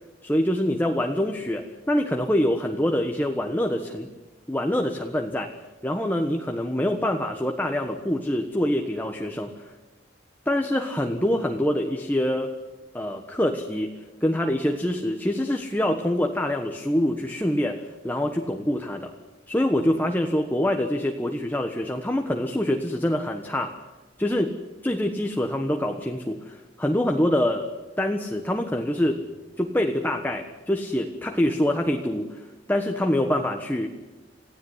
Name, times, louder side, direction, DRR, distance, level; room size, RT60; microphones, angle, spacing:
voice 1, 0.2-4.1 4.5-5.5 5.8-9.7 10.4-12.5 12.9-13.9 14.2-19.1 19.5-23.7 24.2-24.6 24.8-27.7 28.0-29.2 29.6-33.9, left 1 dB, 10° left, 4 dB, 1.4 m, -25 dB
28.0 x 16.0 x 9.8 m, 1.2 s
head